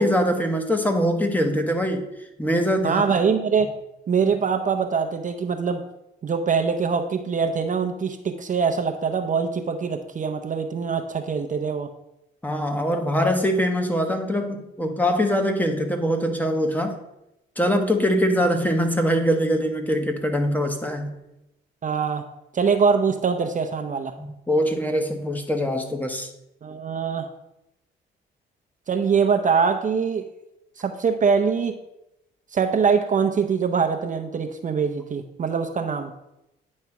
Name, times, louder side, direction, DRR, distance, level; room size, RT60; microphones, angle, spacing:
voice 1, 0.0-2.1 2.4-3.0 12.4-17.0 17.6-21.1 24.2-26.3, equal, 10° left, 5 dB, 1.1 m, -23 dB
voice 2, 2.8-3.7 4.1-5.8 6.2-11.9 21.8-22.2 22.5-24.1 26.6-27.3 28.9-30.2 30.8-31.8 32.5-36.1, right 6 dB, 40° right, 6 dB, 0.7 m, -23 dB
9.3 x 3.2 x 5.9 m, 0.88 s
cardioid pair, 90°, 20 cm